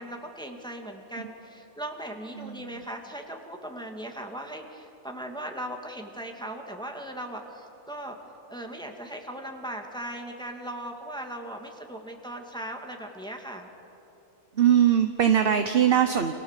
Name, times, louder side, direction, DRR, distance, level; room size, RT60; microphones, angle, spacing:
voice 1, 0.0-8.2 8.5-13.7, right 1 dB, 5° left, 2 dB, 2.2 m, -38 dB
voice 2, 2.4-2.8 14.5-16.3, right 9 dB, 45° right, 7 dB, 1.1 m, -22 dB
30.0 x 26.5 x 7.5 m, 3.0 s
omnidirectional pair, 1.5 m